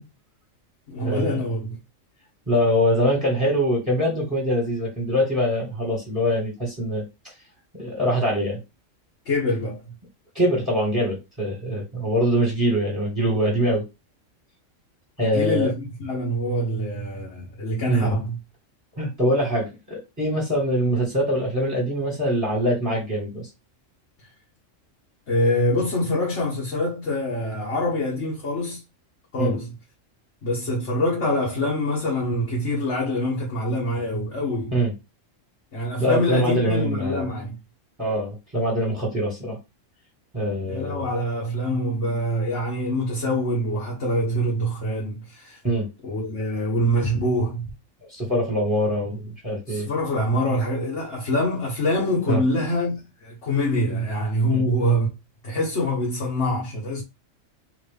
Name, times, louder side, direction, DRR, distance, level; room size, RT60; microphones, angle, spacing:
voice 1, 0.9-1.8 9.2-9.8 15.2-18.4 25.3-28.8 29.3-29.7 30.4-34.8 35.7-37.6 40.7-45.6 46.0-47.7 49.7-55.1 55.4-57.0, left 1 dB, 60° left, 1.6 m, -25 dB
voice 2, 2.5-7.0 7.8-8.6 10.3-13.8 15.2-15.7 17.9-18.1 19.0-23.5 29.4-29.5 34.7-34.9 36.0-37.3 38.0-39.6 40.3-41.1 45.6-45.9 48.1-49.9 52.3-52.4 54.5-54.6, equal, 15° right, 1.7 m, -23 dB
3.8 x 3.0 x 3.4 m
omnidirectional pair, 1.3 m